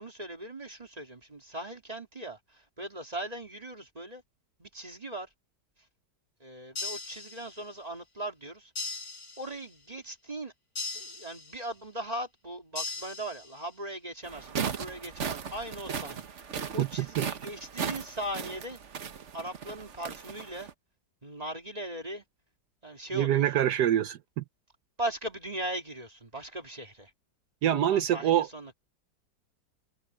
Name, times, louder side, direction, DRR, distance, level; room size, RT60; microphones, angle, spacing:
voice 1, 0.0-4.2 4.6-5.3 6.4-8.7 9.4-10.5 10.9-18.8 19.3-20.7 21.2-22.2 22.8-23.6 25.0-27.1 27.7-28.7, right 1 dB, 20° right, 2.4 m, -39 dB
sound 1, 6.7-7.8 8.7-9.8 10.7-11.8 12.7-13.8, left 3 dB, 50° left, 6.7 m, -39 dB
sound 2, 14.2-20.7, right 7 dB, 45° right, 1.3 m, -37 dB
voice 2, 23.1-24.4 27.6-28.5, right 11 dB, 70° right, 1.2 m, -25 dB
omnidirectional pair, 1.9 m